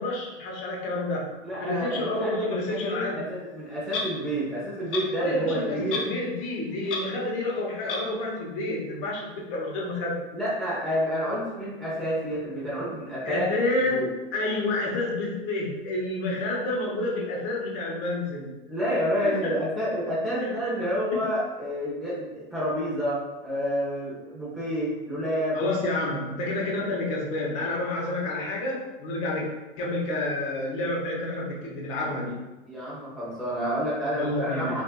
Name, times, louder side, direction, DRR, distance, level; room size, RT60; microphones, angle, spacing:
voice 1, 0.0-1.3 1.6-3.2 5.2-10.2 13.2-18.6 19.2-19.5 20.4-20.5 21.1-21.4 25.5-29.5 29.8-32.4 34.1-34.8, left 2 dB, 40° left, -2 dB, 1.0 m, -29 dB
voice 2, 1.4-6.0 10.3-13.5 13.9-14.1 18.7-25.6 32.6-34.8, equal, ahead, -9 dB, 1.0 m, -29 dB
Clock, 3.9-4.1 4.9-5.0 5.9-6.1 6.4-6.5 6.9-7.0 7.9-8.0, left 4 dB, 65° left, 0.8 m, -30 dB
4.0 x 2.6 x 2.3 m, 1.1 s
hypercardioid pair, 130°, 29 cm